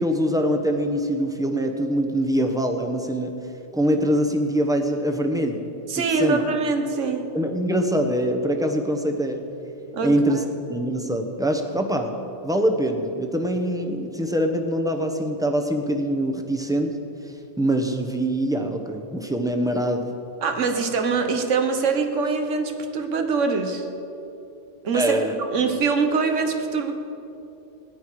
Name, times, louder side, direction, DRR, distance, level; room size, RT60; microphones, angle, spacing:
voice 1, 0.0-3.3 3.7-5.6 6.2-6.4 7.3-9.4 10.0-10.4 10.7-12.1 12.4-16.9 17.2-20.1 24.9-25.3, equal, 5° right, 4 dB, 0.8 m, -23 dB
voice 2, 5.9-7.3 9.9-10.5 20.4-23.9 24.8-25.2 25.5-26.9, right 4 dB, 80° right, 6 dB, 1.4 m, -23 dB
17.5 x 10.5 x 4.8 m, 2.8 s
omnidirectional pair, 1.3 m